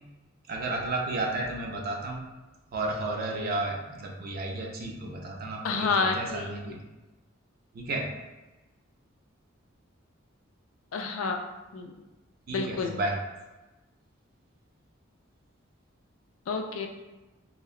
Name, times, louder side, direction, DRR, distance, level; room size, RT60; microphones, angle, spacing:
voice 1, 0.5-2.3 2.7-6.8 7.7-8.1 12.5-13.2, right 2 dB, 50° right, 0 dB, 0.4 m, -32 dB
voice 2, 5.6-6.5 10.9-11.4 11.7-12.0 12.5-13.0 16.5-16.9, left 4 dB, 80° left, 3 dB, 0.3 m, -29 dB
2.7 x 2.1 x 2.4 m, 1.1 s
head